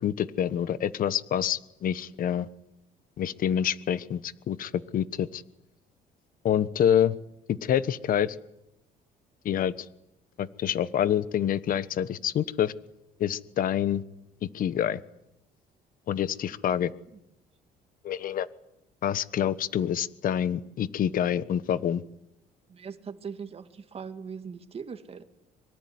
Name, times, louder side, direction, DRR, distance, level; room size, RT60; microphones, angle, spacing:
voice 1, 0.0-2.5 3.2-5.4 6.4-7.1 7.5-8.4 9.4-9.9 10.4-12.7 13.2-14.0 14.5-15.0 16.1-16.9 18.0-18.5 19.0-22.0, left 9 dB, 55° left, 1.3 m, -27 dB
voice 2, 22.7-25.2, right 6 dB, 35° right, 2.4 m, -40 dB
25.0 x 23.5 x 9.6 m
cardioid pair, 110°, 17 cm